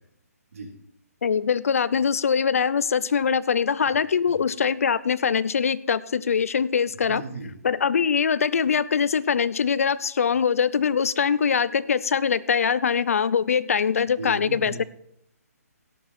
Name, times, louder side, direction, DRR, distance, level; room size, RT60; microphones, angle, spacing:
voice 1, 1.2-7.2 7.6-14.8, left 6 dB, 60° left, 19 dB, 0.6 m, -23 dB
voice 2, 7.1-7.5 14.2-14.9, right 2 dB, 60° right, 0 dB, 3.9 m, -35 dB
17.0 x 7.2 x 4.2 m, 0.77 s
hypercardioid pair, 175°, 9 cm